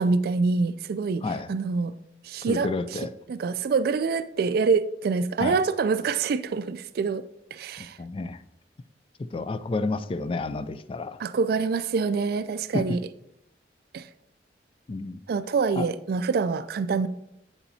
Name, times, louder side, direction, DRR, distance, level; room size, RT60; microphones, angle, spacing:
voice 1, 0.0-1.9 2.2-2.7 3.3-7.2 7.5-8.0 11.2-13.0 13.9-14.1 15.3-17.1, right 4 dB, 60° right, 0.3 m, -25 dB
voice 2, 2.5-3.1 5.4-5.6 8.0-8.4 9.3-11.2 12.7-13.0 14.9-15.2 15.8-15.9, left 3 dB, 30° left, 0.3 m, -30 dB
8.4 x 7.0 x 2.7 m
head